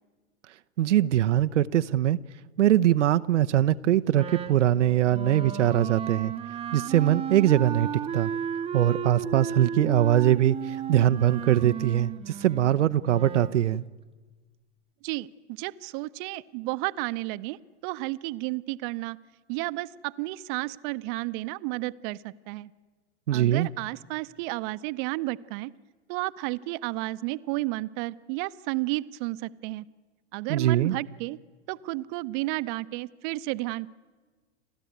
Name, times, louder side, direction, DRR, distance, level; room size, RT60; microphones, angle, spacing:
voice 1, 0.8-2.2 2.6-6.3 6.7-7.9 8.1-8.3 8.7-13.8 23.3-23.7 30.5-31.0, right 12 dB, 80° right, 0.6 m, -22 dB
Wind instrument woodwind instrument, 4.1-13.6, right 9 dB, 15° right, 0.8 m, -34 dB
voice 2, 15.0-19.2 19.5-22.7 23.3-25.7 26.1-29.9 30.3-31.4 31.7-33.9, right 19 dB, 45° right, 0.7 m, -32 dB
29.5 x 13.0 x 9.3 m
hypercardioid pair, 105°, 35 cm